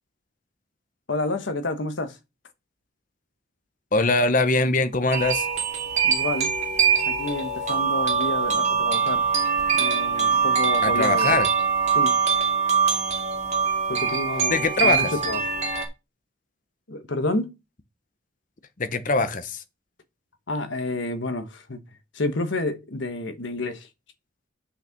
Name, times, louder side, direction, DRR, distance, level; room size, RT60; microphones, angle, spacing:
voice 1, 1.1-2.2 6.0-6.5 7.1-9.3 9.7-11.4 11.9-12.2 13.9-15.5 16.9-17.5 20.5-21.8 22.1-23.9, left 2 dB, 65° left, 1.2 m, -29 dB
voice 2, 3.9-5.5 10.8-11.5 14.5-15.1 18.8-19.6, left 3 dB, 40° left, 0.9 m, -22 dB
sound 1, 5.1-15.9, right 6 dB, 35° right, 2.4 m, -23 dB
6.6 x 6.1 x 5.9 m
head